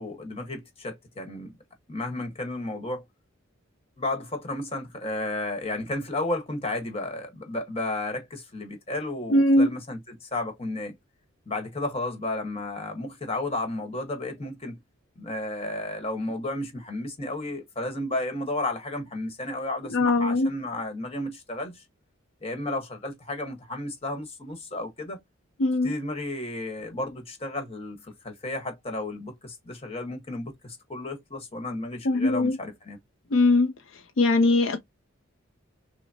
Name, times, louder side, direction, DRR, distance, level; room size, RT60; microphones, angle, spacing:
voice 1, 0.0-1.5 1.9-3.0 4.0-10.9 11.5-14.8 15.2-21.8 22.4-25.2 25.8-33.0, left 2 dB, 30° left, 1.2 m, -33 dB
voice 2, 9.3-9.7 19.9-20.5 25.6-25.9 32.0-32.6 33.3-33.7 34.2-34.8, left 2 dB, 70° left, 0.5 m, -20 dB
5.7 x 2.1 x 2.7 m
head